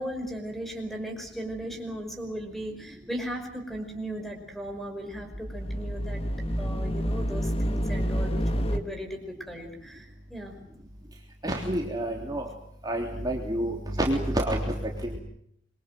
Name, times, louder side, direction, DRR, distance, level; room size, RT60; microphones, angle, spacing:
voice 1, 0.0-6.2 6.6-10.5, equal, ahead, 4 dB, 5.5 m, -37 dB
sound 1, 5.1-8.8, equal, 30° left, 1.8 m, -28 dB
voice 2, 11.4-12.4 12.8-15.2, right 1 dB, 20° right, 0 dB, 3.4 m, -28 dB
27.0 x 23.5 x 7.8 m, 0.72 s
head